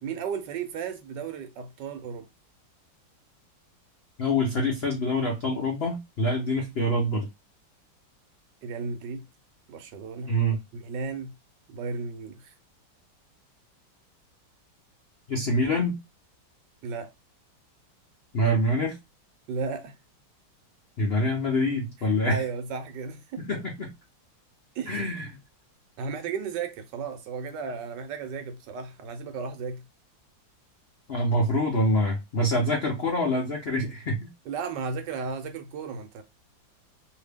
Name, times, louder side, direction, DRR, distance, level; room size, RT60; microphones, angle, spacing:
voice 1, 0.0-2.3 8.6-9.2 9.7-10.3 10.7-11.3 11.7-12.5 16.8-17.1 19.5-19.9 22.0-23.4 24.7-25.0 26.0-29.8 34.5-36.2, right 5 dB, 70° right, 1.2 m, -34 dB
voice 2, 4.2-7.3 10.3-10.6 15.3-16.0 18.3-19.0 21.0-22.4 23.5-23.9 24.9-25.2 31.1-34.3, equal, 65° left, 0.6 m, -25 dB
2.8 x 2.7 x 3.3 m
omnidirectional pair, 2.1 m